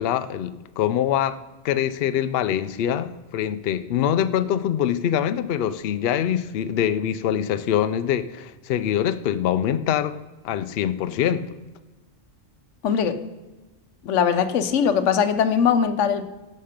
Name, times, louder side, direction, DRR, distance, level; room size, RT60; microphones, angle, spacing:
voice 1, 0.0-1.4 1.6-10.2 10.4-11.6, left 10 dB, 65° left, 0.7 m, -24 dB
voice 2, 12.8-13.1 14.0-16.2, left 7 dB, 90° left, 1.1 m, -20 dB
11.0 x 6.6 x 5.1 m
omnidirectional pair, 1.2 m